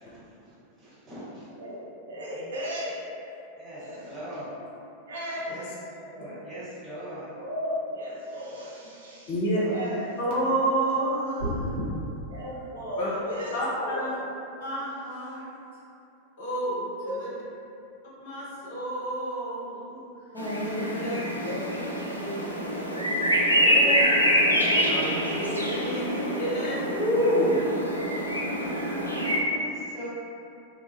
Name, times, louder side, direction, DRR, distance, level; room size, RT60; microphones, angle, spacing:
voice 1, 0.0-1.5 3.6-4.5 5.4-5.6 6.0-7.3 9.6-9.8 25.6-26.7 28.3-30.1, equal, 25° right, -12 dB, 1.4 m, -42 dB
voice 2, 1.6-3.0 3.8-4.1 5.1-5.6 7.3-9.3 9.6-10.1 12.3-14.1 17.0-17.3 21.3-21.7 22.0-22.6 25.7-26.4, equal, 65° right, -7 dB, 0.5 m, -36 dB
voice 3, 9.3-9.6 10.2-12.0 13.0-13.1 13.5-14.1 14.6-15.5 16.4-17.3 18.2-20.0 20.8-21.2 24.8-26.0 26.3-26.8, right 1 dB, 55° left, -7 dB, 0.7 m, -30 dB
sound 1, 11.4-11.9, right 1 dB, 50° right, 1.0 m, -30 dB
voice 4, 20.3-21.5 21.9-22.3 23.6-24.2 24.6-25.1 26.9-27.7, left 1 dB, 20° left, -9 dB, 0.5 m, -28 dB
sound 2, 20.4-29.4, equal, 85° left, 0.3 m, -26 dB
2.2 x 2.0 x 3.0 m, 2.7 s
figure-of-eight pair, 90°, 0 cm